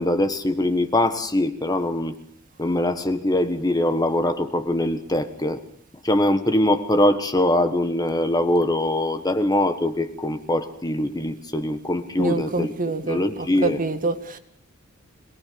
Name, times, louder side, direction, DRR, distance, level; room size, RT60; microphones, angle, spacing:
voice 1, 0.0-2.1 2.6-5.6 6.0-12.7 13.0-13.8, left 1 dB, 20° left, 9 dB, 1.4 m, -22 dB
voice 2, 12.2-14.4, right 3 dB, 40° right, 8 dB, 2.2 m, -26 dB
26.0 x 19.5 x 6.9 m, 0.65 s
head